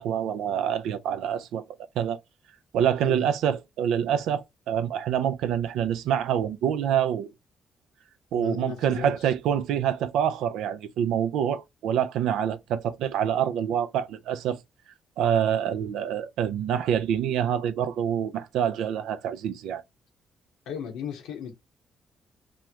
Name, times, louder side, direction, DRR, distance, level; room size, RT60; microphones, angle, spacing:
voice 1, 0.0-1.6 2.0-2.2 2.7-7.3 8.3-14.6 15.2-19.8, right 9 dB, 85° right, 0.4 m, -26 dB
voice 2, 8.4-9.3 20.7-21.5, left 7 dB, 90° left, 0.8 m, -36 dB
2.9 x 2.1 x 3.5 m
cardioid pair, 90°, 0 cm